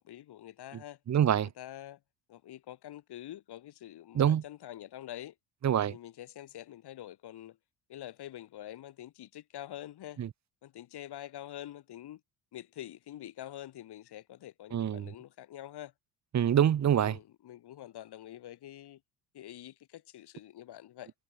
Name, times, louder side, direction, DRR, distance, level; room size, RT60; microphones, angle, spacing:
voice 1, 0.0-1.0 1.6-2.0 2.3-5.3 5.9-7.6 7.9-10.2 10.6-12.2 12.5-15.9 17.0-19.0 19.3-21.1, left 12 dB, 55° left, 4.8 m, -46 dB
voice 2, 1.1-1.5 4.1-4.4 5.6-6.0 10.2-10.3 14.7-15.1 16.3-17.2, right 9 dB, 35° right, 1.4 m, -25 dB
figure-of-eight pair, 55°, 48 cm